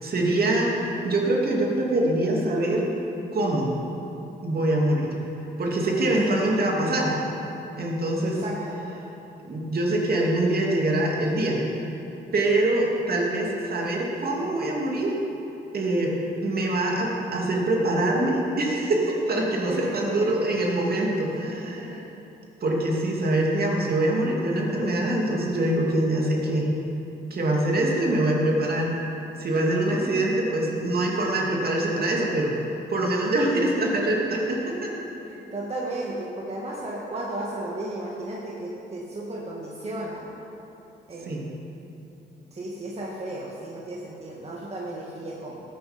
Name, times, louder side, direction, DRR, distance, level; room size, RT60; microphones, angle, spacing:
voice 1, 0.0-0.7 1.0-2.9 3.3-3.7 4.4-5.1 5.6-7.1 7.8-8.4 9.4-11.8 12.3-15.1 15.7-16.1 16.4-21.9 22.6-26.7 27.3-29.0 29.4-32.5 32.9-34.9 41.3-41.4, right 1 dB, 50° right, -1 dB, 2.6 m, -24 dB
voice 2, 6.0-6.3 8.2-8.8 19.5-20.1 21.3-22.0 30.0-30.2 35.3-40.3 41.1-41.4 42.5-45.6, right 1 dB, 30° right, -4 dB, 1.8 m, -34 dB
13.5 x 9.3 x 5.2 m, 3.0 s
cardioid pair, 75°, 21 cm